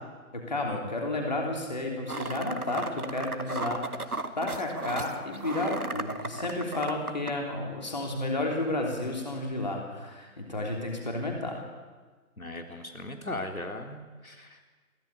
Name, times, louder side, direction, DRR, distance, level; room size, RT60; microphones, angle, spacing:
voice 1, 0.5-4.0 4.4-11.6, left 2 dB, 30° left, 1 dB, 3.3 m, -32 dB
sound 1, 2.1-7.3, right 2 dB, 75° right, 1.9 m, -35 dB
voice 2, 12.4-14.6, left 2 dB, 70° left, 4 dB, 3.3 m, -38 dB
22.0 x 17.0 x 9.6 m, 1.4 s
figure-of-eight pair, 170°, 44 cm